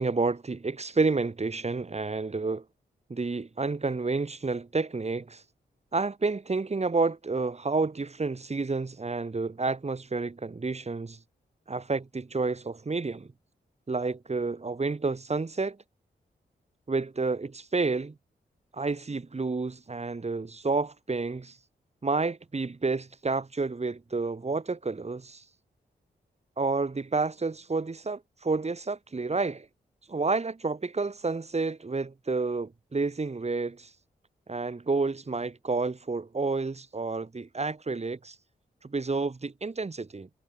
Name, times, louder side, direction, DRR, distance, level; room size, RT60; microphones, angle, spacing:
voice 1, 0.0-2.6 3.1-5.4 5.9-11.2 11.7-13.3 13.9-15.8 16.9-18.2 18.7-21.6 22.0-25.4 26.6-29.7 30.1-33.9 34.5-38.4 38.8-40.3, right 3 dB, 35° right, 1.7 m, -30 dB
supercardioid pair, 45°, 19 cm